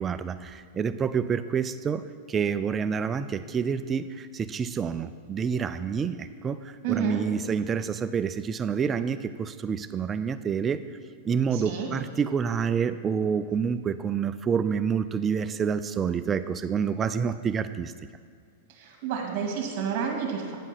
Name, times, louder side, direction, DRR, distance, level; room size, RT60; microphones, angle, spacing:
voice 1, 0.0-10.8 11.2-17.9, right 6 dB, 20° right, 12 dB, 0.3 m, -28 dB
voice 2, 6.8-7.2 11.5-11.9 18.7-20.6, right 7 dB, 50° right, 1 dB, 1.8 m, -30 dB
9.5 x 5.3 x 5.7 m, 2.2 s
supercardioid pair, 135°, 0 cm